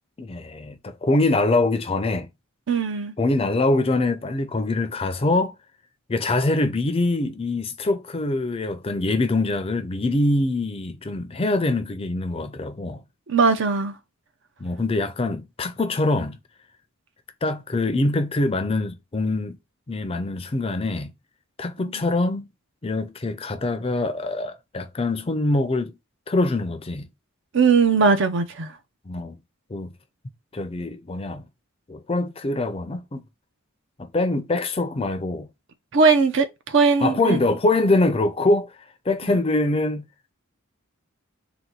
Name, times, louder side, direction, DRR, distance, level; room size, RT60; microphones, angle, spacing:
voice 1, 0.2-2.3 3.2-5.5 6.1-13.0 14.6-16.4 17.4-19.6 19.9-21.1 21.6-22.5 22.8-25.9 26.3-27.1 29.1-29.4 29.7-29.9 30.5-31.5 31.9-33.2 34.0-35.5 37.0-38.7 39.1-40.0, left 2 dB, 25° left, 0.5 m, -24 dB
voice 2, 2.7-3.1 13.3-14.0 21.8-21.9 27.5-28.8 35.9-37.4 39.3-39.4, right 4 dB, 60° right, 0.6 m, -19 dB
3.9 x 2.3 x 4.4 m
head